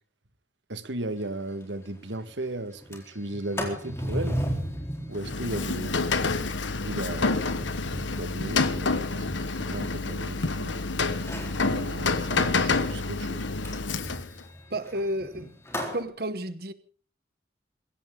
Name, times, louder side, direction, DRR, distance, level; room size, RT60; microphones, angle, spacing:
voice 1, 0.7-4.4 5.1-6.2 6.7-7.8 8.1-10.9 11.5-13.5, right 1 dB, 80° right, 1.7 m, -36 dB
Sliding door, 1.2-1.3 1.6-1.7 2.0-2.3 2.7-10.7 11.1-11.6 13.6-16.0, equal, 15° left, 4.0 m, -36 dB
Rain, 5.2-14.4, left 3 dB, 90° left, 1.4 m, -28 dB
voice 2, 14.7-15.5 15.9-16.7, right 1 dB, 55° right, 1.1 m, -31 dB
22.5 x 16.5 x 3.8 m
head